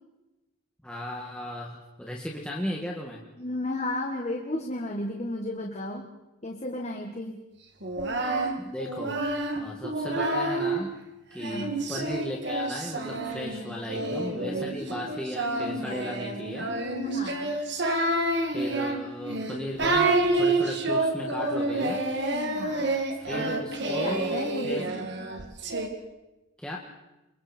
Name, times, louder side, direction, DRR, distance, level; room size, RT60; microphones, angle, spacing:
voice 1, 0.8-3.2 8.6-9.2 9.6-11.0 11.3-16.8 18.5-22.0 23.3-24.9 26.6-26.8, left 1 dB, 5° left, -2 dB, 1.7 m, -36 dB
voice 2, 3.4-6.1 6.4-7.4 11.4-11.8 14.5-15.0 17.0-17.6 22.3-23.0 23.4-25.1, left 1 dB, 30° left, 1 dB, 1.6 m, -34 dB
Singing, 7.8-10.8 11.4-25.9, right 2 dB, 55° right, 2.2 m, -28 dB
29.5 x 22.0 x 4.5 m, 1.0 s
head